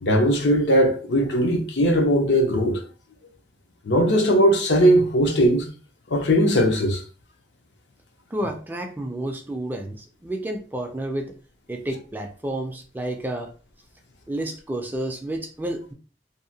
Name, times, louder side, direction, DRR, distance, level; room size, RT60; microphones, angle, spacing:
voice 1, 0.0-2.8 3.8-5.7 6.1-7.0, equal, 80° left, 0.6 m, -19 dB
voice 2, 8.3-11.3 11.7-13.5 14.3-15.9, right 1 dB, 10° right, 0.3 m, -30 dB
2.7 x 2.1 x 2.7 m
head